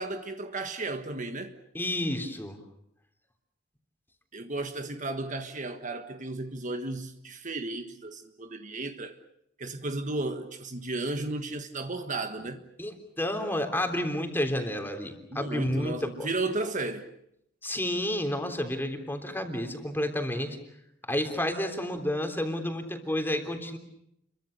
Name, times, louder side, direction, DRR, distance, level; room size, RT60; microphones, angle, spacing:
voice 1, 0.0-1.5 4.3-9.2 9.6-12.6 15.3-17.1, right 2 dB, 40° right, 1.5 m, -34 dB
voice 2, 1.7-2.6 12.8-16.3 17.6-20.6 21.1-23.8, left 1 dB, 10° left, 3.4 m, -30 dB
30.0 x 23.5 x 6.7 m
head